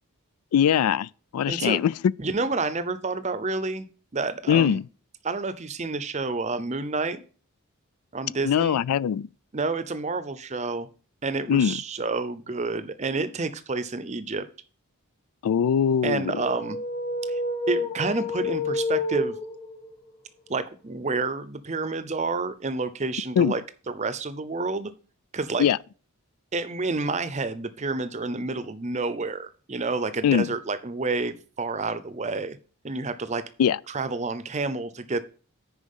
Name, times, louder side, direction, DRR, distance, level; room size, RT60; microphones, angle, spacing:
voice 1, 0.5-1.9 4.5-4.8 8.4-9.3 11.5-11.8 15.4-16.3 23.4-23.5 25.6-25.8 30.2-30.5 33.6-33.8, left 8 dB, 80° left, 0.3 m, -22 dB
voice 2, 1.5-1.8 2.2-3.9 4.1-4.8 5.2-7.2 8.1-8.8 9.5-10.9 11.2-14.5 16.0-16.8 17.3-17.4 17.7-19.4 20.5-23.6 23.9-24.9 25.3-25.7 26.5-32.6 32.8-33.4 33.9-35.2, right 3 dB, 30° right, 0.6 m, -29 dB
sound 1, 16.3-19.9, left 2 dB, 35° left, 1.6 m, -29 dB
10.0 x 4.8 x 5.4 m
head